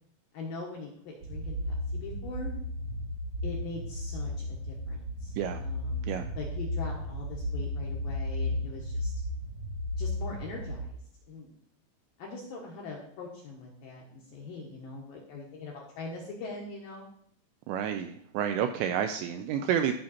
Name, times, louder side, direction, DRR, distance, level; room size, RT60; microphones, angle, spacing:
voice 1, 0.3-2.5 3.4-9.1 10.0-11.0 11.3-11.5 12.2-17.1, left 3 dB, 70° left, -2 dB, 2.2 m, -42 dB
sound 1, 1.2-10.8, left 1 dB, 65° right, 2.0 m, -34 dB
voice 2, 17.7-19.9, right 9 dB, 85° right, 7 dB, 2.5 m, -29 dB
14.0 x 5.7 x 4.2 m, 0.66 s
omnidirectional pair, 5.5 m